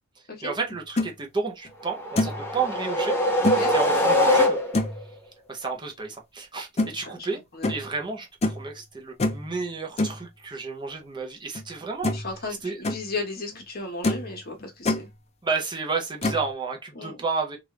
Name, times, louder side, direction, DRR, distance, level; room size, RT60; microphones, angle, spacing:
voice 1, 0.4-3.2 3.7-4.6 5.5-7.4 7.7-12.2 12.6-12.8 15.4-17.6, right 4 dB, 25° right, 0.7 m, -31 dB
sound 1, 0.7-1.1 1.6-1.7 2.2-2.5 3.4-3.6 4.7-5.0 6.8-6.9 7.6-7.8 8.4-8.6 9.2-9.5 10.0-10.2 11.5-11.6 12.0-12.3 12.6-13.0 13.6-13.7 14.0-14.3 14.6-15.0 16.2-16.5, left 2 dB, 30° left, 0.5 m, -25 dB
sound 2, 1.9-5.0, left 1 dB, 10° left, 0.9 m, -23 dB
voice 2, 3.4-3.7 6.9-7.3 7.5-7.7 12.1-15.1 16.9-17.2, left 3 dB, 50° left, 1.2 m, -35 dB
3.3 x 2.5 x 3.0 m
head